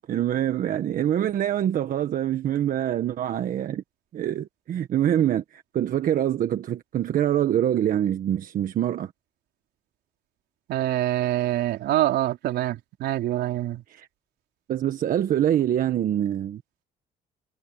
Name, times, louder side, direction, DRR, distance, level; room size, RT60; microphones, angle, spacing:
voice 1, 0.1-3.8 4.1-9.1 13.9-14.1 14.7-16.6, right 11 dB, 55° right, 1.3 m, -25 dB
voice 2, 10.7-13.8, right 14 dB, 75° right, 4.1 m, -25 dB
cardioid pair, 110°, 17 cm